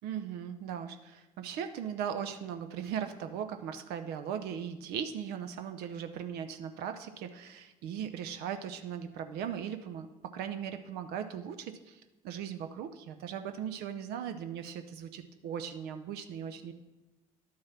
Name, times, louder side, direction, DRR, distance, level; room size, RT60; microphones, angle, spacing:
voice 1, 0.0-10.1 10.3-16.7, right 8 dB, 60° right, 8 dB, 0.7 m, -38 dB
11.0 x 4.7 x 5.7 m, 1.0 s
hypercardioid pair, 60°, 18 cm